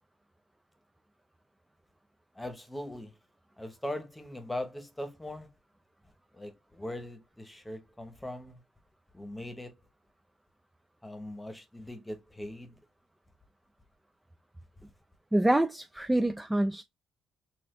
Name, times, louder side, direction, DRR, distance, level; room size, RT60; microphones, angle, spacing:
voice 1, 2.4-3.1 3.6-5.5 6.3-8.6 9.1-9.7 11.0-12.7, left 1 dB, 10° left, 1.0 m, -40 dB
voice 2, 15.3-16.8, right 1 dB, 10° right, 0.3 m, -26 dB
4.1 x 2.4 x 3.7 m
cardioid pair, 90°, 0 cm